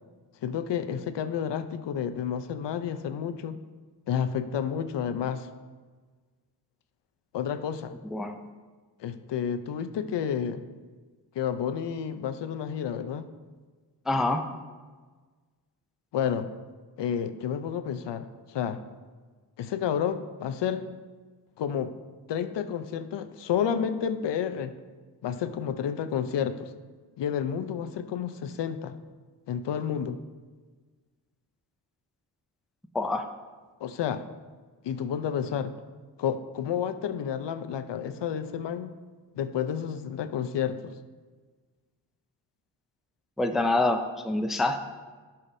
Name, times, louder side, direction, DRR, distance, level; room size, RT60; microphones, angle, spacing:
voice 1, 0.4-3.6 4.1-5.5 7.3-7.9 9.0-10.7 11.3-13.3 16.1-16.5 17.0-18.8 19.6-20.8 21.6-21.9 22.3-24.7 25.2-26.7 27.2-29.0 29.5-30.2 33.8-34.2 34.8-35.7 36.2-38.9 39.4-40.9, left 8 dB, 85° left, 11 dB, 0.6 m, -30 dB
voice 2, 14.1-14.5 32.9-33.2 43.4-44.8, left 2 dB, ahead, 5 dB, 0.3 m, -26 dB
14.5 x 5.8 x 2.7 m, 1.4 s
wide cardioid pair, 155°, 41 cm